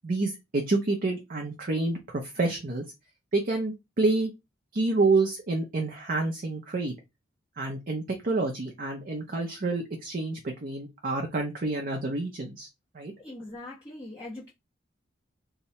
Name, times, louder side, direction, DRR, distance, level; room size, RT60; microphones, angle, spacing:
voice 1, 0.0-2.8 3.3-4.3 4.7-7.0 7.6-12.7 12.9-13.1, right 3 dB, 45° right, 0.6 m, -28 dB
voice 2, 13.2-14.5, left 2 dB, 15° left, 0.9 m, -41 dB
2.8 x 2.2 x 4.1 m
head